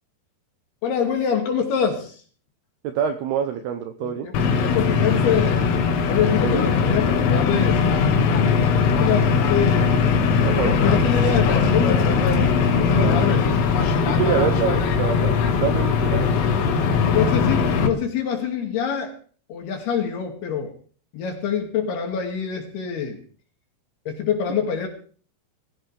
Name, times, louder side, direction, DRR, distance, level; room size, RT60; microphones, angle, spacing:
voice 1, 0.8-2.2 4.0-5.6 6.1-7.8 8.6-9.9 10.5-12.2 12.8-13.5 17.0-19.1 19.5-20.7 21.1-23.2 24.1-24.9, left 7 dB, 60° left, 3 dB, 4.1 m, -25 dB
voice 2, 2.8-4.3 6.4-6.7 10.4-10.8 13.0-13.5 14.1-16.4, right 8 dB, 80° right, 7 dB, 2.3 m, -26 dB
sound 1, 4.3-17.9, left 5 dB, 80° left, 4.3 m, -20 dB
20.5 x 15.0 x 3.5 m, 0.43 s
omnidirectional pair, 5.6 m